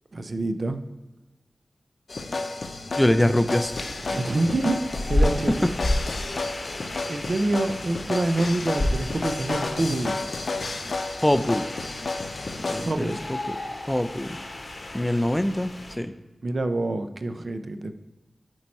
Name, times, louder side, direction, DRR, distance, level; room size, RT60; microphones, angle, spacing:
voice 1, 0.1-0.8 4.1-5.8 7.1-10.2 12.8-13.2 16.4-17.9, right 2 dB, 60° right, 9 dB, 0.5 m, -27 dB
sound 1, 2.1-12.9, left 3 dB, 70° left, 0.6 m, -32 dB
voice 2, 3.0-3.7 11.2-11.7 12.6-13.1 13.5-13.6 13.9-14.4 14.9-16.1, left 1 dB, 10° left, 10 dB, 0.4 m, -23 dB
sound 2, 3.6-16.0, left 1 dB, 55° left, 1.1 m, -32 dB
8.5 x 4.6 x 4.2 m, 1.1 s
cardioid pair, 50°, 0 cm